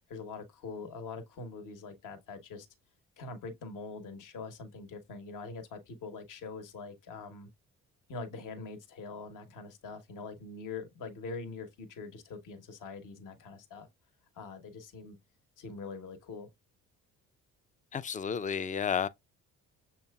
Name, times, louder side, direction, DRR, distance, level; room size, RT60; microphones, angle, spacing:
voice 1, 0.1-2.7 3.2-7.5 8.1-13.9 14.3-15.2 15.6-16.5, left 4 dB, 60° left, 1.0 m, -43 dB
voice 2, 17.9-19.1, left 7 dB, 25° left, 0.3 m, -31 dB
6.5 x 2.9 x 2.3 m
supercardioid pair, 65°, 35 cm